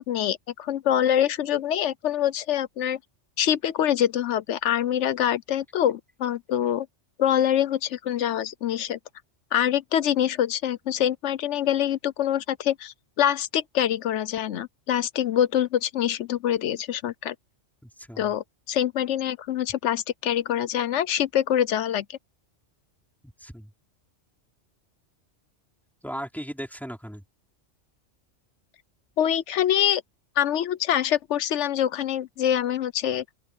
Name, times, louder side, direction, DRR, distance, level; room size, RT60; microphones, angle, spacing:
voice 1, 0.0-3.0 3.4-6.9 7.2-9.0 9.5-17.3 18.2-22.2 29.2-30.0 30.4-33.2, left 10 dB, 75° left, 1.0 m, -25 dB
voice 2, 17.8-18.3 23.2-23.7 26.0-27.2, equal, ahead, 3.4 m, -37 dB
open air
omnidirectional pair, 1.2 m